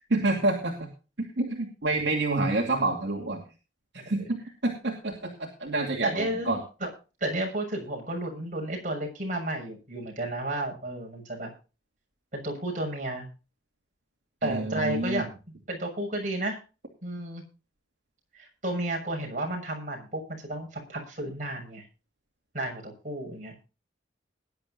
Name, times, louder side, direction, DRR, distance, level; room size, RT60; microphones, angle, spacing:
voice 1, 0.1-0.9 1.2-3.4 3.9-6.6 14.4-15.3, right 2 dB, 75° right, 0 dB, 2.7 m, -28 dB
voice 2, 6.0-6.9 7.2-11.5 12.3-13.3 14.4-15.3 15.7-16.6 17.0-17.4 18.3-21.8 22.5-23.5, right 1 dB, 45° right, 1 dB, 6.6 m, -32 dB
20.5 x 11.0 x 2.7 m, 0.33 s
head